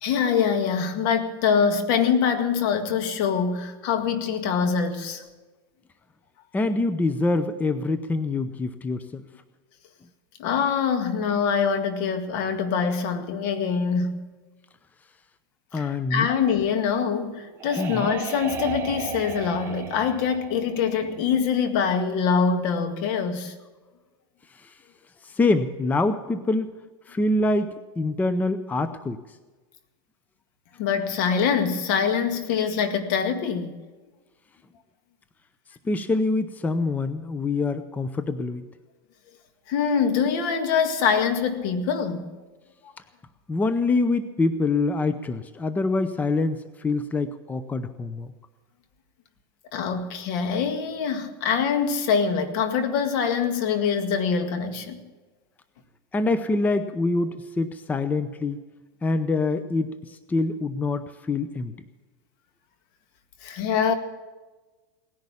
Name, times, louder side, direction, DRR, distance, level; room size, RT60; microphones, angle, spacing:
voice 1, 0.0-5.2 10.4-14.3 15.7-23.6 30.8-33.8 39.7-42.3 49.7-55.0 63.4-63.9, left 6 dB, 60° left, 1.9 m, -24 dB
voice 2, 6.5-9.3 15.7-16.3 17.8-18.1 24.5-24.7 25.2-26.8 27.1-29.2 35.8-38.6 43.5-48.3 56.1-58.6 59.0-61.7, left 3 dB, 15° left, 0.7 m, -25 dB
sound 1, 17.0-21.6, right 5 dB, 20° right, 2.1 m, -35 dB
18.0 x 10.5 x 7.1 m
supercardioid pair, 125°, 13 cm